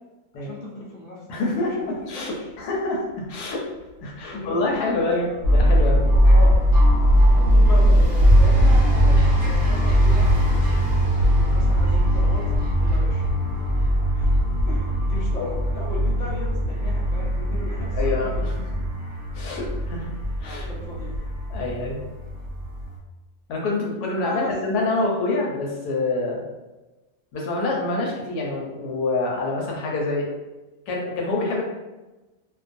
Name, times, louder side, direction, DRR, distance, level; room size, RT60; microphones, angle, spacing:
voice 1, 0.4-2.5 4.2-5.5 6.3-6.6 7.0-10.3 11.1-12.5 12.8-13.2 14.1-14.3 14.7-18.7 20.4-21.1 24.2-24.6, left 1 dB, 60° left, -3 dB, 0.8 m, -37 dB
voice 2, 1.3-3.6 4.0-6.0 9.0-9.3 15.4-15.5 17.9-18.5 19.3-20.1 20.4-20.7 21.5-22.0 23.5-26.4 27.3-30.3 30.9-31.6, left 2 dB, 85° left, -2 dB, 1.1 m, -26 dB
Train, 1.6-1.7 1.9-18.5 19.5-19.6, right 1 dB, 35° right, 0.8 m, -40 dB
sound 1, 5.4-23.0, equal, 60° right, 0.9 m, -19 dB
2.5 x 2.3 x 2.5 m, 1.1 s
omnidirectional pair, 1.6 m